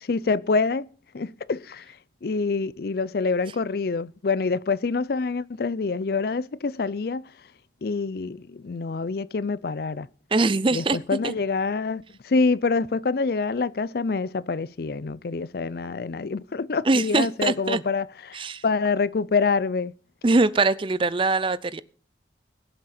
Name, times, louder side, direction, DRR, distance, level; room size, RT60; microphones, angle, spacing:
voice 1, 0.1-0.9 1.1-1.8 2.2-7.3 7.8-10.1 10.7-18.4 18.6-19.9, left 4 dB, 60° left, 0.5 m, -26 dB
voice 2, 10.3-11.0 11.2-11.3 16.8-17.8 18.3-18.6 20.2-21.8, right 3 dB, 30° right, 0.5 m, -22 dB
21.0 x 7.7 x 4.3 m
head